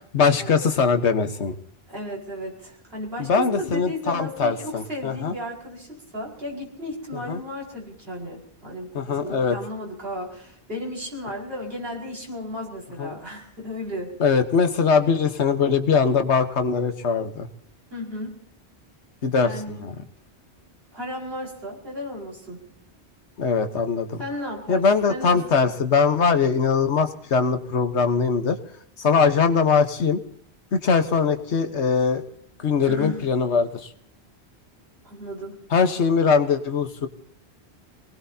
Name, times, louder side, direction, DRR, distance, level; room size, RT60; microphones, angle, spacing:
voice 1, 0.1-1.6 3.2-5.3 7.1-7.4 8.9-9.6 13.0-13.2 14.2-17.5 19.2-19.9 23.4-24.2 24.7-28.6 29.0-30.2 30.7-32.2 32.6-33.9 35.7-37.1, left 5 dB, 90° left, 8 dB, 1.5 m, -21 dB
voice 2, 1.9-14.1 17.9-18.3 19.4-19.9 20.9-22.6 24.2-25.7 32.9-33.2 35.0-35.6, equal, 60° right, -3 dB, 5.3 m, -34 dB
26.5 x 19.0 x 2.8 m, 0.67 s
omnidirectional pair, 1.1 m